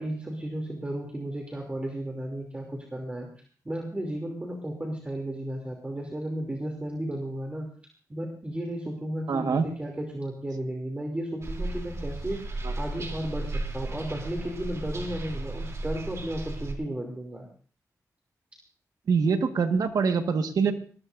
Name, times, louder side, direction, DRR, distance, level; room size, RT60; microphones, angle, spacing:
voice 1, 0.0-3.3 3.6-7.7 8.1-12.4 12.8-17.5, right 1 dB, 20° right, 1 dB, 2.9 m, -34 dB
voice 2, 9.3-9.7 12.6-12.7 19.1-20.7, right 5 dB, 90° right, 6 dB, 1.6 m, -24 dB
sound 1, 11.4-16.7, right 2 dB, 50° right, 3.1 m, -34 dB
21.0 x 20.0 x 2.6 m, 0.42 s
wide cardioid pair, 120°, 6 cm